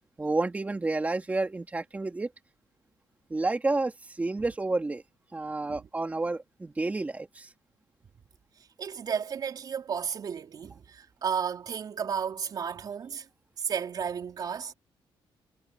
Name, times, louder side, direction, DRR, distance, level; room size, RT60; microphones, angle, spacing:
voice 1, 0.2-2.3 3.3-5.0 5.3-7.5, right 2 dB, 15° right, 3.0 m, -30 dB
voice 2, 8.8-13.3 13.6-14.7, right 7 dB, 45° right, 4.2 m, -33 dB
cardioid pair, 145°, 9 cm